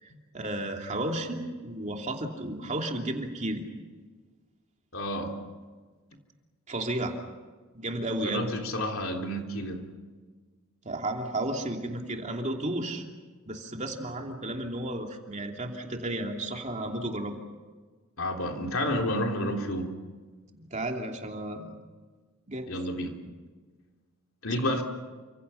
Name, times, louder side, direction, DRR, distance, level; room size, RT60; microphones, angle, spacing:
voice 1, 0.0-3.6 6.7-7.2 7.7-8.5 10.8-13.0 13.4-17.3 20.7-21.7 22.5-22.7, right 1 dB, 30° right, 2 dB, 2.9 m, -33 dB
voice 2, 4.9-5.4 8.2-9.8 18.2-19.9 22.7-23.2 24.4-24.8, left 1 dB, 65° left, 2 dB, 3.6 m, -30 dB
30.0 x 26.5 x 5.8 m, 1.4 s
head